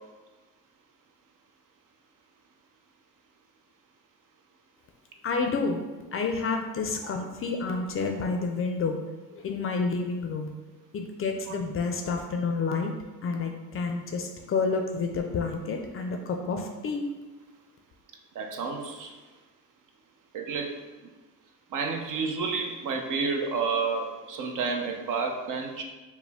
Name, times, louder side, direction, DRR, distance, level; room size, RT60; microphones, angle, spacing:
voice 1, 5.2-5.8 6.1-9.0 9.3-10.5 10.9-12.9 13.2-17.1, left 4 dB, 35° left, 4 dB, 0.4 m, -29 dB
voice 2, 18.4-19.1 20.3-20.7 21.7-25.8, right 4 dB, 55° right, 3 dB, 0.7 m, -30 dB
4.9 x 2.1 x 3.4 m, 1.2 s
cardioid pair, 110°, 37 cm